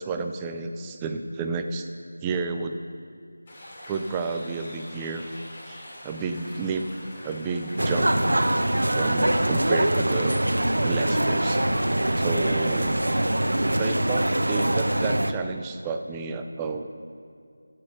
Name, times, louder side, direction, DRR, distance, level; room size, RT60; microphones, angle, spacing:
voice 1, 0.0-1.9 2.2-2.8 3.9-5.3 5.7-6.9 7.2-8.1 8.9-10.4 10.8-11.6 12.2-13.0 13.7-16.9, right 4 dB, 10° right, 6 dB, 0.5 m, -31 dB
sound 1, 3.5-13.7, left 1 dB, 30° left, 2.9 m, -44 dB
sound 2, 7.8-15.3, right 1 dB, 70° right, 0.8 m, -23 dB
13.5 x 8.6 x 5.6 m, 2.3 s
figure-of-eight pair, 165°, 0 cm